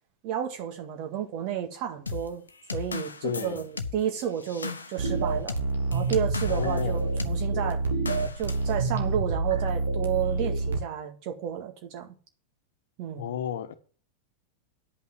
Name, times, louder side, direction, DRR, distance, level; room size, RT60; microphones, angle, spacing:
voice 1, 0.2-2.4 2.7-5.6 5.9-7.8 8.4-12.2 13.0-13.3, right 10 dB, 45° right, 1.9 m, -31 dB
sound 1, 2.1-6.8 7.2-7.4 8.1-8.7, left 4 dB, 75° left, 0.8 m, -36 dB
voice 2, 3.2-3.6 6.5-7.0 13.2-13.7, left 8 dB, 60° left, 1.2 m, -32 dB
sound 2, 5.0-10.8, right 3 dB, 65° right, 1.7 m, -28 dB
10.5 x 5.6 x 7.7 m
figure-of-eight pair, 90°, 0 cm